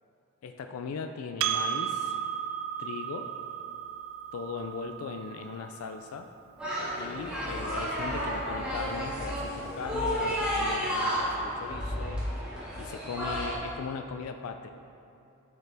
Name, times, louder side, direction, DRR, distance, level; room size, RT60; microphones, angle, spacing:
voice 1, 0.4-2.2 2.8-3.3 4.3-6.3 7.0-12.2 12.8-14.7, left 5 dB, 75° left, 6 dB, 0.4 m, -38 dB
Percussion, 1.4-6.2, right 9 dB, 65° right, 0.4 m, -34 dB
sound 1, 6.6-13.5, equal, 5° right, 1.6 m, -32 dB
8.1 x 6.7 x 3.4 m, 2.6 s
head